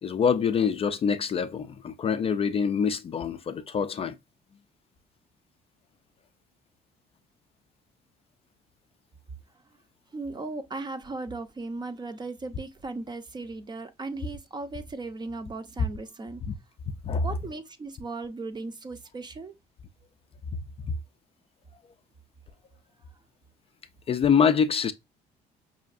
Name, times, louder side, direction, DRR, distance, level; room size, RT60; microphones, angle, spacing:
voice 1, 0.0-4.2 16.5-16.6 17.0-17.3 20.8-20.9 24.1-24.9, left 6 dB, 35° left, 0.4 m, -25 dB
voice 2, 10.1-16.4 17.2-19.5, right 3 dB, 25° right, 0.6 m, -37 dB
5.5 x 2.4 x 2.4 m
cardioid pair, 110°, 17 cm